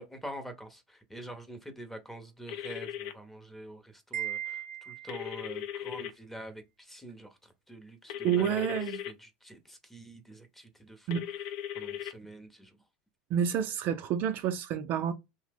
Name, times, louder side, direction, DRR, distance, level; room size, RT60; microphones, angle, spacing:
voice 1, 0.0-11.2 11.7-12.8, right 1 dB, 5° left, 0.7 m, -46 dB
sound 1, 2.5-3.1 5.1-6.1 8.1-9.1 11.1-12.1, left 10 dB, 70° left, 0.5 m, -38 dB
Wind chime, 4.1-5.5, right 10 dB, 85° right, 0.6 m, -38 dB
voice 2, 8.2-9.0 11.1-11.2 13.3-15.1, right 9 dB, 50° right, 0.4 m, -29 dB
2.9 x 2.0 x 3.3 m
supercardioid pair, 120°, 4 cm